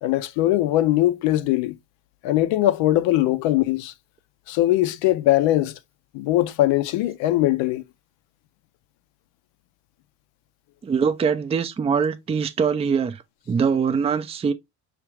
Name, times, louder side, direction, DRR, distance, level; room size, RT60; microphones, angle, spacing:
voice 1, 0.0-1.8 2.2-3.9 4.5-5.8 6.1-7.8, left 15 dB, 65° left, 0.6 m, -21 dB
voice 2, 10.8-13.2 13.5-14.5, right 6 dB, 15° right, 0.3 m, -23 dB
4.9 x 2.4 x 3.1 m
hypercardioid pair, 65°, 48 cm